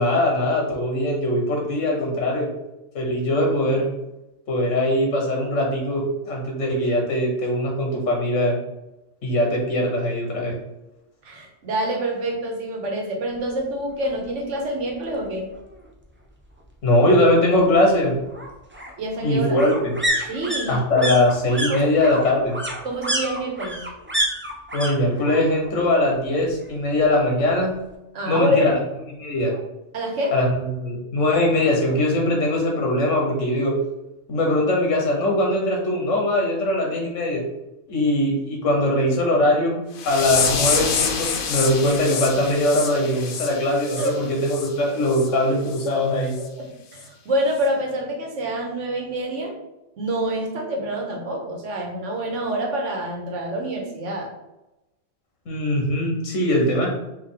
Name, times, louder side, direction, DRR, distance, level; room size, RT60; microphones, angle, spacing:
voice 1, 0.0-2.5 2.9-3.9 4.5-8.6 9.2-10.5 16.8-18.2 19.2-19.9 20.7-22.6 24.7-27.7 28.3-28.7 29.2-29.5 30.3-33.7 34.3-37.4 37.9-39.8 40.0-46.4 55.5-56.9, left 1 dB, 80° left, 0 dB, 1.4 m, -21 dB
voice 2, 11.2-15.5 19.0-19.6 20.3-21.1 21.7-21.8 22.8-23.8 28.1-28.7 29.9-30.3 44.0-44.1 46.6-49.5 50.0-54.3, right 1 dB, 70° right, 1 dB, 1.3 m, -26 dB
sound 1, 14.0-14.1 14.5-14.6 14.8-15.8 17.1-24.9 25.2-25.8 26.0-27.1 27.4-27.5, right 1 dB, 20° right, 0.3 m, -29 dB
sound 2, 40.0-44.7 45.1-45.3 45.7-45.9 46.3-46.5 47.0-47.1, left 6 dB, 60° left, 0.6 m, -27 dB
4.8 x 2.6 x 3.6 m, 0.96 s
omnidirectional pair, 1.3 m